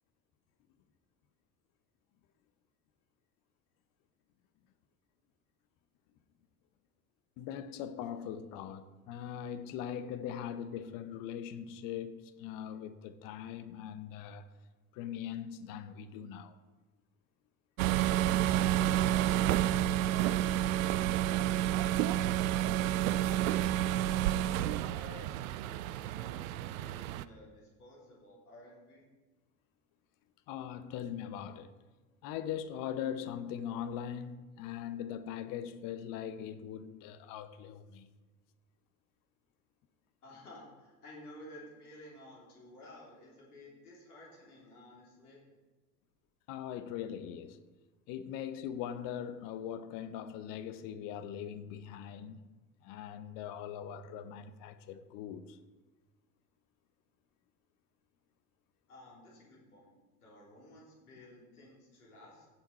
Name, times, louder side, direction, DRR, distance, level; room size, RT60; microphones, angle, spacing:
voice 1, 7.4-14.5 14.9-16.6 30.5-31.7 32.2-38.1 46.5-47.6 48.1-52.4 52.8-55.6, left 9 dB, 45° left, 0.8 m, -41 dB
sound 1, 17.8-27.2, right 12 dB, 60° right, 0.5 m, -30 dB
voice 2, 23.1-24.2 24.9-29.0 40.2-45.6 58.9-62.5, left 1 dB, 75° left, 3.2 m, -54 dB
15.5 x 5.9 x 4.2 m
figure-of-eight pair, 70°, 45 cm